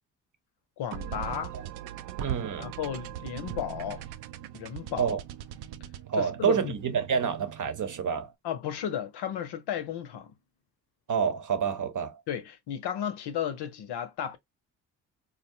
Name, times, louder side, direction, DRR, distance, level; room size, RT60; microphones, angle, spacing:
voice 1, 0.8-1.5 2.6-4.0 4.5-5.2 6.1-6.7 8.4-10.3 12.3-14.4, left 9 dB, 65° left, 0.7 m, -34 dB
sound 1, 0.9-8.2, right 10 dB, 65° right, 0.5 m, -40 dB
voice 2, 2.2-2.7 5.0-5.2 6.1-8.3 11.1-12.2, right 7 dB, 45° right, 0.8 m, -28 dB
3.7 x 2.0 x 2.7 m
hypercardioid pair, 45°, 43 cm